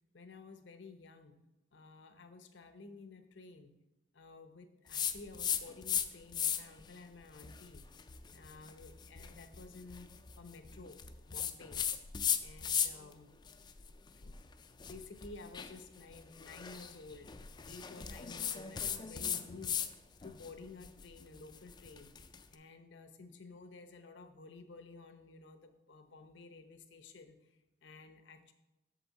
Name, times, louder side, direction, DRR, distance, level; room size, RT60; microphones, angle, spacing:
voice 1, 0.1-1.3 1.7-3.8 4.1-7.9 8.3-11.8 12.4-13.4 14.1-14.4 14.8-17.3 17.6-19.8 20.2-22.1 22.5-27.6 27.8-28.5, left 3 dB, 65° left, 9 dB, 0.8 m, -53 dB
sound 1, 4.9-6.1 6.3-6.8 7.3-13.1 13.5-19.9 20.2-22.4, left 8 dB, 25° left, 0.4 m, -37 dB
8.1 x 6.7 x 4.1 m, 0.97 s
head